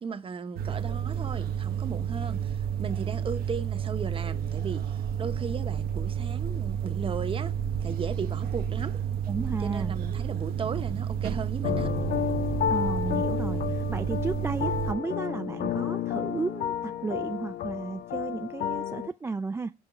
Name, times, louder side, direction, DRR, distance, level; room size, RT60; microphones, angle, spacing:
voice 1, 0.0-9.0 9.6-11.9, right 5 dB, 30° right, 0.9 m, -36 dB
sound 1, 0.6-15.0, right 8 dB, 60° right, 0.8 m, -31 dB
voice 2, 9.3-9.9 12.7-19.7, right 4 dB, 15° right, 0.3 m, -33 dB
sound 2, 11.6-19.1, left 10 dB, 60° left, 0.6 m, -31 dB
5.6 x 5.1 x 4.6 m
cardioid pair, 110°, 17 cm